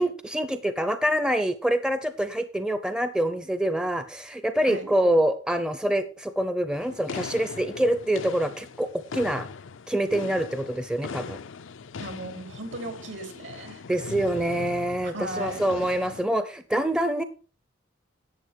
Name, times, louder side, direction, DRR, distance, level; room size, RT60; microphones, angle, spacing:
voice 1, 0.0-9.5 9.9-11.4 13.9-17.2, right 1 dB, 5° right, 11 dB, 0.6 m, -26 dB
sound 1, 6.7-16.3, left 5 dB, 75° left, 0.5 m, -40 dB
voice 2, 12.0-13.8 15.0-15.7, right 1 dB, 70° right, 7 dB, 3.0 m, -37 dB
11.5 x 8.0 x 4.7 m, 0.35 s
head